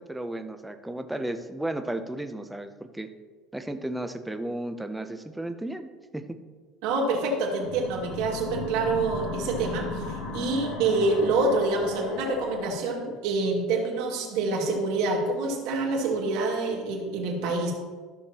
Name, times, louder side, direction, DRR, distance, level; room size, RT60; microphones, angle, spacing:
voice 1, 0.0-3.1 3.5-6.4, right 1 dB, 5° right, 7 dB, 0.5 m, -34 dB
voice 2, 6.8-10.0 10.3-17.7, right 3 dB, 75° right, -1 dB, 2.0 m, -26 dB
sound 1, 7.6-12.7, left 3 dB, 70° left, 1.6 m, -35 dB
13.5 x 6.4 x 2.9 m, 1.4 s
cardioid pair, 150°, 0 cm